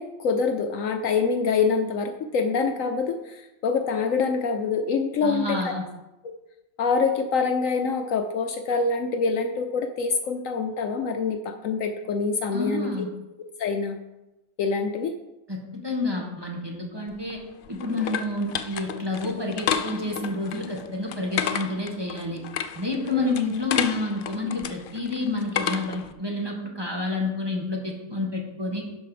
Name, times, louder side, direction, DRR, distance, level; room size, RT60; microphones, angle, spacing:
voice 1, 0.0-5.7 6.2-6.3 6.8-13.1 13.6-14.0 14.6-15.2 23.1-23.3, left 5 dB, 65° left, 6 dB, 1.0 m, -25 dB
voice 2, 5.2-5.8 12.5-13.1 15.5-17.4 17.7-22.4 22.7-28.8, left 2 dB, 15° right, 0 dB, 1.6 m, -29 dB
sound 1, 17.1-26.1, left 7 dB, 90° left, 0.4 m, -32 dB
11.5 x 5.2 x 5.0 m, 0.98 s
omnidirectional pair, 1.6 m